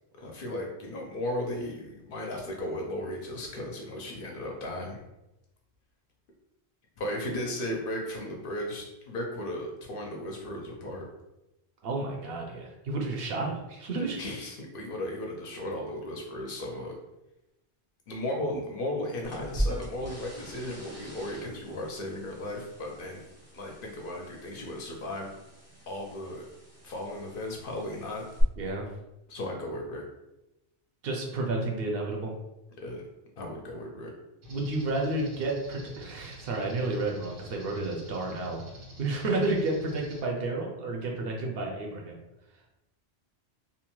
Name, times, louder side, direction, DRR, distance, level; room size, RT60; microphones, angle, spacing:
voice 1, 0.2-5.0 7.0-11.1 14.0-16.9 18.1-23.2 23.5-25.3 25.9-26.5 26.8-28.3 29.3-30.0 32.8-33.0 33.4-34.1, left 1 dB, 60° left, 0 dB, 0.7 m, -35 dB
voice 2, 11.8-14.2 28.6-28.9 31.0-32.3 34.5-38.6 39.0-42.2, right 2 dB, 65° right, 0 dB, 0.7 m, -31 dB
sound 1, 19.2-28.4, right 1 dB, 25° right, 0.3 m, -40 dB
sound 2, 34.4-40.2, right 1 dB, 85° right, 1.3 m, -48 dB
2.7 x 2.1 x 2.9 m, 0.93 s
omnidirectional pair, 1.1 m